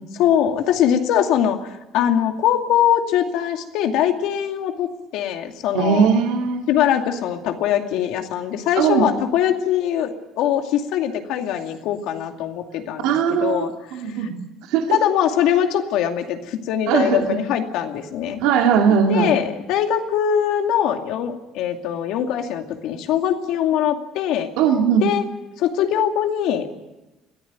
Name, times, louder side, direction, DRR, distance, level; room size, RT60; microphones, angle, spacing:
voice 1, 0.1-1.6 1.9-6.1 6.7-14.3 14.9-18.4 19.1-24.5 25.0-25.3 25.6-26.7, left 10 dB, 75° left, 5 dB, 2.4 m, -22 dB
voice 2, 5.7-6.7 8.8-9.1 13.0-14.4 14.7-15.0 16.9-17.3 18.4-19.4 24.6-25.0, right 6 dB, 85° right, 3 dB, 2.2 m, -19 dB
22.0 x 14.5 x 9.4 m, 1.0 s
cardioid pair, 125°, 0 cm